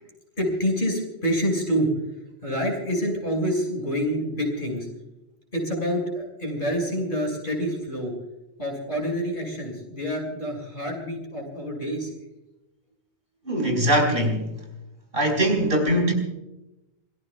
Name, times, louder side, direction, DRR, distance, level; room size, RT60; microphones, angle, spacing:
voice 1, 0.0-1.9 2.4-4.9 5.5-8.1 8.6-12.1, equal, 50° left, -1 dB, 6.2 m, -27 dB
voice 2, 13.4-14.5 15.1-16.1, right 1 dB, 55° right, 2 dB, 4.8 m, -21 dB
27.5 x 18.5 x 2.4 m, 0.93 s
omnidirectional pair, 1.1 m